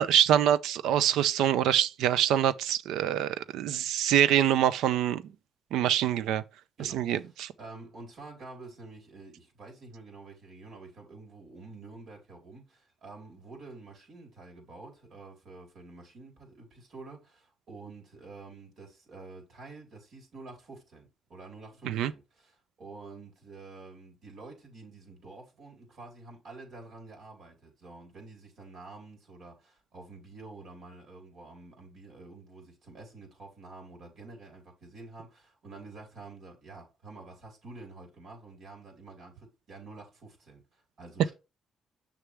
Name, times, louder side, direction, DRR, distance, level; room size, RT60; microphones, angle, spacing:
voice 1, 0.0-5.2 5.7-6.4 6.9-7.5 21.9-22.1, right 10 dB, 90° right, 0.5 m, -25 dB
voice 2, 6.8-7.3 7.6-41.3, right 3 dB, 65° right, 4.3 m, -48 dB
6.8 x 6.1 x 3.5 m
cardioid pair, 90°, 0 cm